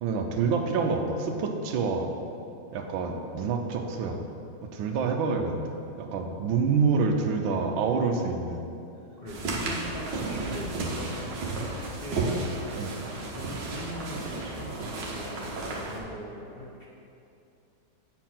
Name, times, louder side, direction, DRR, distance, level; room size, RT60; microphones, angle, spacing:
voice 1, 0.0-2.1 2.7-4.2 4.6-8.6 10.2-10.9 12.7-12.9, right 5 dB, 85° right, 4 dB, 1.5 m, -27 dB
voice 2, 9.2-12.5 13.0-16.9, equal, 50° left, -5 dB, 0.7 m, -41 dB
sound 1, 9.3-16.0, right 2 dB, 65° right, 1.7 m, -33 dB
8.2 x 4.6 x 5.7 m, 2.7 s
omnidirectional pair, 2.1 m